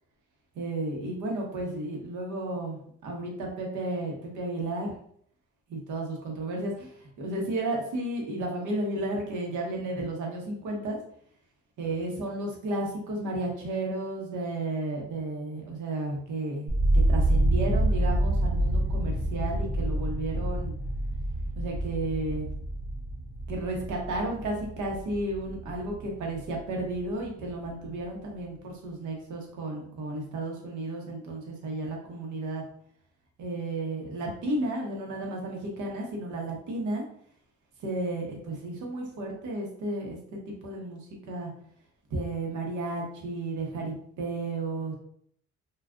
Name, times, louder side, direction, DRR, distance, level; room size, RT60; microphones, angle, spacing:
voice 1, 0.5-4.9 5.7-11.0 11.8-20.8 21.6-22.5 23.5-32.6 33.4-37.0 37.8-41.0 41.3-41.5 42.1-44.9, right 2 dB, 75° right, 0 dB, 1.1 m, -33 dB
sound 1, 16.7-26.7 27.0-27.7, right 1 dB, 50° right, 1.0 m, -27 dB
3.4 x 2.5 x 2.4 m, 0.63 s
cardioid pair, 90°, 30 cm